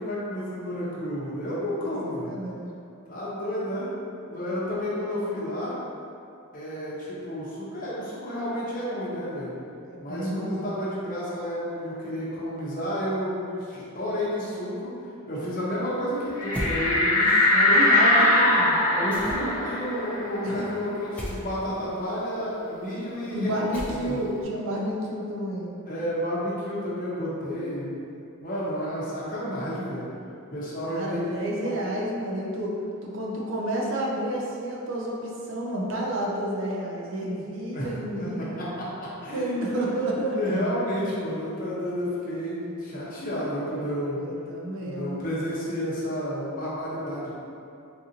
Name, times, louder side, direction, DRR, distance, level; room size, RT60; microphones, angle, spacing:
voice 1, 0.0-2.3 3.1-3.9 4.3-5.7 6.5-9.5 10.0-14.9 15.3-18.2 18.9-23.5 23.9-24.2 25.9-28.0 28.4-30.1 30.5-31.4 31.6-31.7 37.7-37.9 38.2-39.9 40.3-44.2 44.8-47.3, equal, 40° left, -8 dB, 0.8 m, -31 dB
voice 2, 2.0-2.7 9.9-10.8 17.5-18.8 20.4-20.7 23.3-25.7 30.9-38.5 39.3-40.4 41.0-41.1 44.2-45.4, right 1 dB, 60° right, -3 dB, 0.5 m, -30 dB
sound 1, 16.4-21.6 21.9-22.0 22.4-24.0, left 1 dB, 85° left, 0.9 m, -22 dB
sound 2, 16.5-16.8 19.1-19.6 21.2-21.4 23.7-24.3, equal, 5° left, 0.4 m, -33 dB
4.0 x 2.6 x 2.7 m, 2.6 s
head